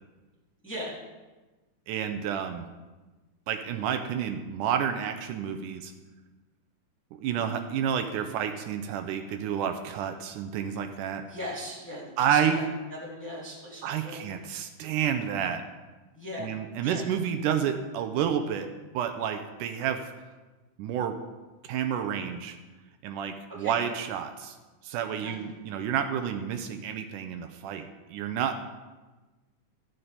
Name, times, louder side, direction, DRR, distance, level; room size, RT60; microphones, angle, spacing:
voice 1, 1.9-2.7 3.5-5.9 7.1-11.2 12.2-12.7 13.8-15.6 16.4-18.7 18.9-20.0 20.8-21.2 21.6-22.6 23.0-24.6 24.8-28.6, right 8 dB, 80° right, 7 dB, 2.1 m, -30 dB
voice 2, 11.3-12.7 13.0-14.3 16.1-16.5 16.8-17.0 23.6-23.8 25.2-25.3, equal, 5° left, -6 dB, 1.7 m, -39 dB
13.0 x 7.7 x 4.1 m, 1.2 s
omnidirectional pair, 3.7 m